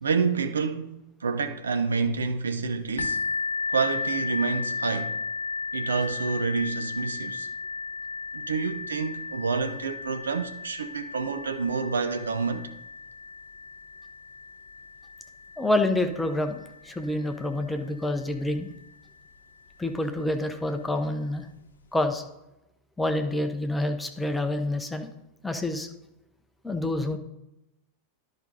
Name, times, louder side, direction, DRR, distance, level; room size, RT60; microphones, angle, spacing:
voice 1, 0.0-3.2 3.7-5.2 5.7-7.5 8.3-12.7, right 5 dB, 70° right, 0.6 m, -28 dB
sound 1, 3.0-18.5 19.3-19.4 19.9-20.0, left 4 dB, 70° left, 0.5 m, -35 dB
voice 2, 15.6-18.7 19.8-21.5 21.9-22.2 23.0-25.1 25.4-25.9 26.6-27.2, left 1 dB, 5° left, 0.8 m, -27 dB
10.5 x 5.4 x 4.0 m
figure-of-eight pair, 90°, 0 cm